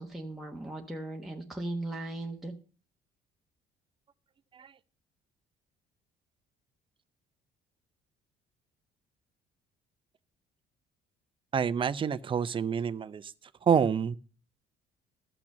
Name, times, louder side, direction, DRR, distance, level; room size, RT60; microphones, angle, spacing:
voice 1, 0.0-2.5, right 2 dB, ahead, 1.1 m, -37 dB
voice 2, 11.5-13.3 13.6-14.2, right 7 dB, 30° right, 0.6 m, -27 dB
13.0 x 6.0 x 6.5 m
cardioid pair, 110°, 17 cm